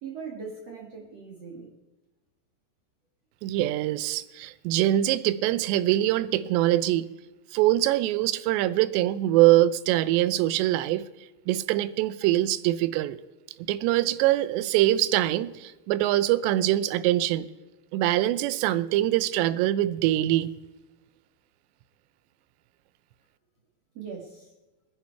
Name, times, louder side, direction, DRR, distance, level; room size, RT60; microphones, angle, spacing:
voice 1, 0.0-1.7 23.9-24.5, right 5 dB, 50° right, 2.2 m, -40 dB
voice 2, 3.4-7.1 7.5-11.0 11.5-13.2 13.7-17.5 17.9-20.5, right 14 dB, 85° right, 2.9 m, -23 dB
22.0 x 10.0 x 4.6 m
omnidirectional pair, 5.0 m